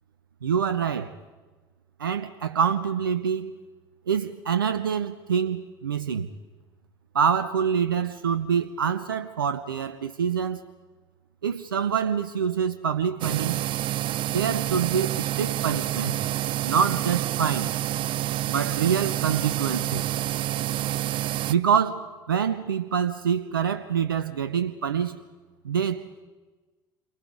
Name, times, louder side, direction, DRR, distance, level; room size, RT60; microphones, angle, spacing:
voice 1, 0.4-1.1 2.0-3.6 4.1-6.3 7.1-10.6 11.4-13.6 14.3-16.2 16.6-17.7 18.5-20.0 21.5-25.2 25.6-26.3, right 7 dB, 85° right, 0.7 m, -26 dB
sound 1, 13.2-21.5, right 14 dB, 50° right, 0.6 m, -28 dB
29.0 x 23.0 x 4.8 m
figure-of-eight pair, 60°, 11 cm